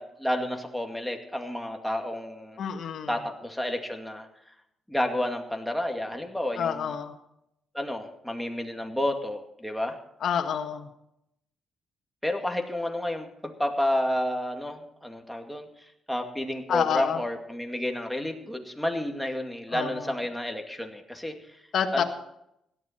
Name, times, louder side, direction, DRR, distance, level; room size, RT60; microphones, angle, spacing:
voice 1, 0.0-2.6 3.1-4.3 4.9-6.9 7.7-10.0 12.2-15.7 16.1-21.6 21.9-22.0, left 1 dB, ahead, 3 dB, 2.2 m, -30 dB
voice 2, 2.6-3.1 6.6-7.1 10.2-10.9 16.7-17.2 19.7-19.9 21.7-22.0, left 7 dB, 65° left, 4 dB, 1.6 m, -27 dB
17.0 x 12.0 x 4.4 m, 0.79 s
cardioid pair, 90°, 0 cm